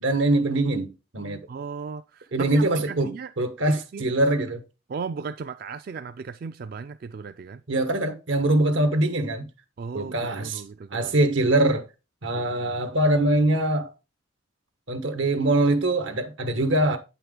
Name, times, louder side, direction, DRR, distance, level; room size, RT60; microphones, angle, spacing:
voice 1, 0.0-1.4 2.3-4.6 7.7-9.5 9.9-10.6 10.9-11.8 12.2-13.9 14.9-17.0, right 1 dB, 85° right, 1.3 m, -23 dB
voice 2, 1.5-3.3 3.7-4.1 4.9-7.6 9.8-11.1 12.3-12.7, right 5 dB, 50° right, 0.3 m, -36 dB
8.8 x 5.7 x 3.7 m
head